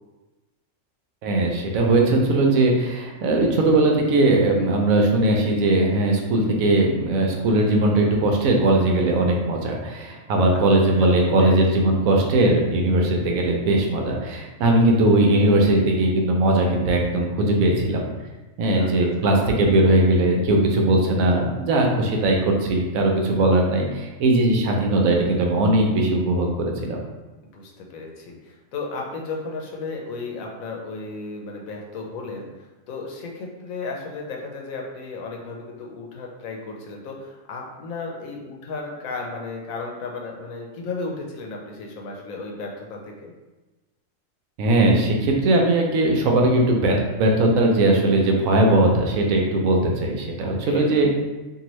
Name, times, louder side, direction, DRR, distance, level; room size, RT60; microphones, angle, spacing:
voice 1, 1.2-18.0 18.6-27.0 44.6-51.2, right 1 dB, 80° right, 1 dB, 1.0 m, -19 dB
voice 2, 11.0-11.6 18.8-18.9 19.2-19.4 27.5-43.3 50.4-50.9, left 3 dB, 80° left, 0 dB, 1.0 m, -34 dB
2.7 x 2.6 x 3.0 m, 1.1 s
omnidirectional pair, 1.4 m